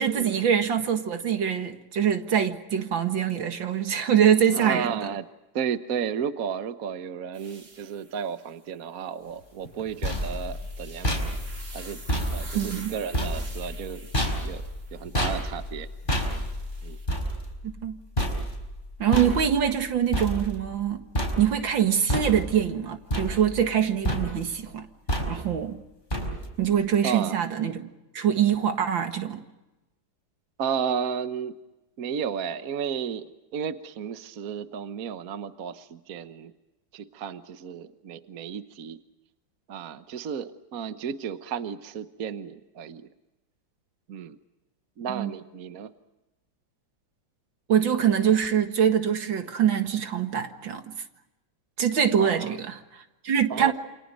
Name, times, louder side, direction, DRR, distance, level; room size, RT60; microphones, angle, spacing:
voice 1, 0.0-5.0 12.5-12.9 17.8-18.0 19.0-21.1 21.4-24.9 25.3-25.8 26.6-27.9 28.1-29.4 45.1-45.3 47.7-50.9 51.8-53.7, right 8 dB, 75° right, 2.5 m, -24 dB
voice 2, 4.5-5.3 5.5-11.3 11.7-12.0 12.3-14.1 14.4-15.9 16.8-17.0 27.0-27.3 30.6-31.6 32.0-36.5 36.9-39.0 39.7-43.1 44.1-44.4 45.0-45.9 52.2-52.5 53.5-53.7, right 7 dB, 55° right, 1.3 m, -33 dB
sound 1, 7.3-8.5 9.8-15.3 16.1-17.1, right 3 dB, 30° right, 2.4 m, -47 dB
sound 2, 9.7-20.9 21.1-21.8 22.1-22.7 23.1-23.8 24.0-24.6 25.1-25.6 26.1-26.6, equal, 25° left, 4.7 m, -30 dB
29.0 x 26.5 x 5.3 m
omnidirectional pair, 2.1 m